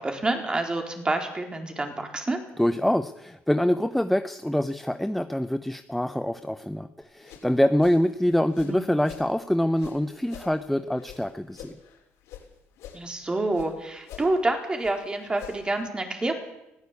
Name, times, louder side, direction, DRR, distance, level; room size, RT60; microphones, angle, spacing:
voice 1, 0.0-2.4 8.6-8.8 12.9-16.3, right 2 dB, 20° right, 4 dB, 4.2 m, -28 dB
voice 2, 2.6-11.7, left 1 dB, 5° left, 11 dB, 0.8 m, -25 dB
sound 1, 7.0-9.3 9.7-12.5 12.7-13.7 14.0-15.8, left 9 dB, 80° left, 6.2 m, -46 dB
20.5 x 15.5 x 8.5 m, 0.91 s
cardioid pair, 100°, 5 cm